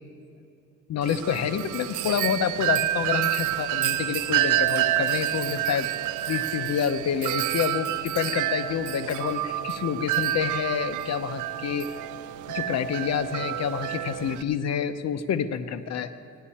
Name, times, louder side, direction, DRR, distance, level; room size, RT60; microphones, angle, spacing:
voice 1, 0.9-5.9 6.3-12.0 12.5-16.1, left 8 dB, 60° left, 11 dB, 0.8 m, -28 dB
Wind chime, 1.0-14.4, right 13 dB, 80° right, 0.5 m, -28 dB
16.5 x 11.0 x 4.2 m, 2.6 s
cardioid pair, 90°, 30 cm